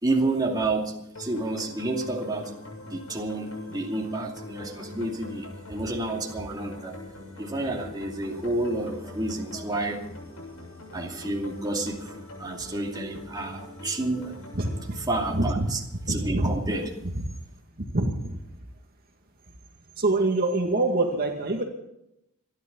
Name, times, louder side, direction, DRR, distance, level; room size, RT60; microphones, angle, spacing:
voice 1, 0.0-2.6 2.9-7.0 7.4-10.1 10.9-14.4 15.0-15.8 16.1-16.9, right 2 dB, 20° right, 0 dB, 2.5 m, -30 dB
sound 1, 1.1-16.2, left 2 dB, 75° left, 7.6 m, -43 dB
voice 2, 14.5-15.0 15.3-15.7 16.1-16.7 17.9-18.4 20.0-21.6, right 2 dB, 45° right, 2 dB, 2.1 m, -25 dB
27.0 x 11.5 x 4.0 m, 0.83 s
head